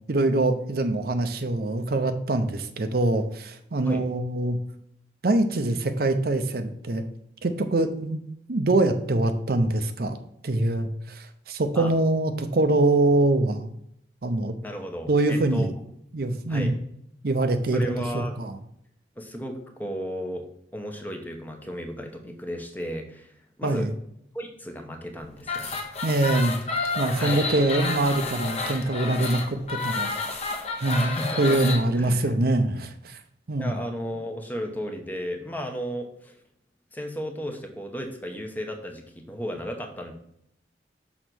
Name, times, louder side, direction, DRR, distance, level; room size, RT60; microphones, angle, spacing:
voice 1, 0.1-4.6 5.2-7.0 7.4-8.2 8.5-10.2 10.4-13.7 14.2-14.6 15.1-15.7 16.1-16.7 17.2-18.6 23.6-23.9 26.0-26.6 27.0-30.2 30.8-33.2 33.5-33.8, right 2 dB, 55° right, 8 dB, 0.6 m, -24 dB
voice 2, 14.6-15.7 16.5-16.7 17.7-18.5 19.2-23.9 24.3-25.8 27.2-27.4 31.0-31.6 32.0-32.3 33.6-36.4 36.9-40.1, equal, 10° left, 3 dB, 0.8 m, -34 dB
sound 1, 25.4-31.8, left 3 dB, 35° left, 1.0 m, -30 dB
6.2 x 3.9 x 6.1 m, 0.72 s
head